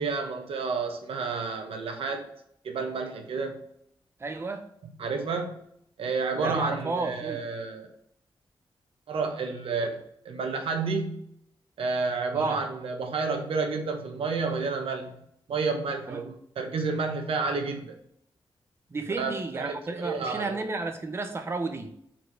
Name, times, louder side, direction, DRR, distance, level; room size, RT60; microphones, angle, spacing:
voice 1, 0.0-2.3 2.6-3.6 5.0-5.6 6.0-7.9 9.1-11.2 11.8-15.2 15.5-18.0 19.2-20.7, right 4 dB, 80° right, 4 dB, 1.1 m, -30 dB
voice 2, 4.2-4.7 6.3-7.4 12.3-12.6 16.1-16.3 18.9-21.9, right 3 dB, 25° right, 6 dB, 0.7 m, -32 dB
4.6 x 4.5 x 4.7 m, 0.72 s
wide cardioid pair, 175°, 9 cm